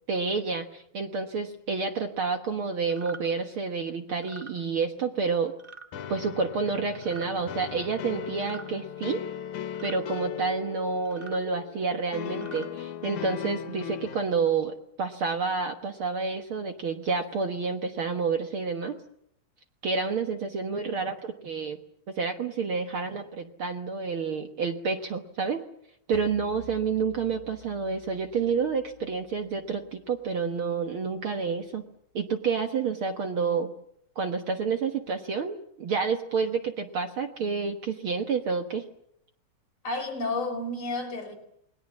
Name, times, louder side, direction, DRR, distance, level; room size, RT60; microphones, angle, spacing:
voice 1, 0.1-5.5 6.1-9.2 9.8-19.0 19.8-21.8 22.1-25.6 26.1-31.8 32.1-33.7 34.2-38.8, right 5 dB, 55° right, 1.9 m, -29 dB
sound 1, 2.9-3.2 4.2-4.5 5.6-5.9 6.9-7.3 8.4-8.7 9.7-10.0 11.1-11.4 12.3-12.7, right 3 dB, 20° right, 1.8 m, -45 dB
sound 2, 5.9-14.2, left 9 dB, 85° left, 2.6 m, -38 dB
sound 3, 26.1-31.2, left 1 dB, 5° left, 7.9 m, -52 dB
voice 2, 39.8-41.3, left 2 dB, 45° left, 5.6 m, -31 dB
28.5 x 21.5 x 7.4 m
omnidirectional pair, 3.3 m